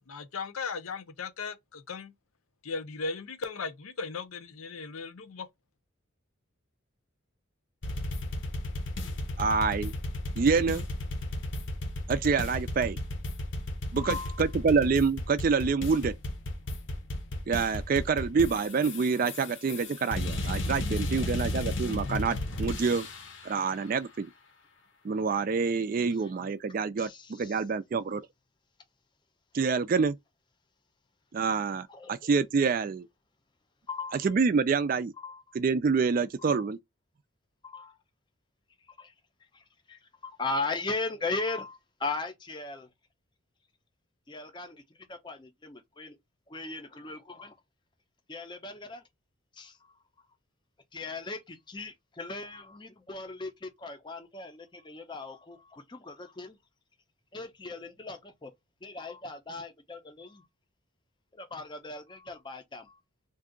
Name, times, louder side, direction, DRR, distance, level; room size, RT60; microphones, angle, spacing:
voice 1, 0.1-2.1 2.6-5.5, left 4 dB, 85° left, 0.7 m, -37 dB
sound 1, 7.8-23.4, left 1 dB, 60° left, 0.9 m, -34 dB
voice 2, 9.4-9.9 10.4-10.8 12.1-13.0 13.9-16.1 17.5-23.1 23.4-24.3 25.0-28.2 29.5-30.1 31.3-33.1 34.1-35.1 35.5-36.8, right 5 dB, 40° right, 0.3 m, -27 dB
voice 3, 14.0-14.4 27.0-27.1 32.0-32.1 33.9-34.2 35.2-35.4 36.5-36.6 37.6-37.9 39.0-39.1 40.2-42.9 44.3-44.8 45.2-46.1 46.5-47.5 48.3-49.0 49.6-49.7 50.9-51.4 51.7-55.6 55.9-56.5 57.3-58.5 58.8-60.4 61.4-62.8, left 3 dB, 20° left, 0.5 m, -37 dB
2.6 x 2.4 x 3.6 m
head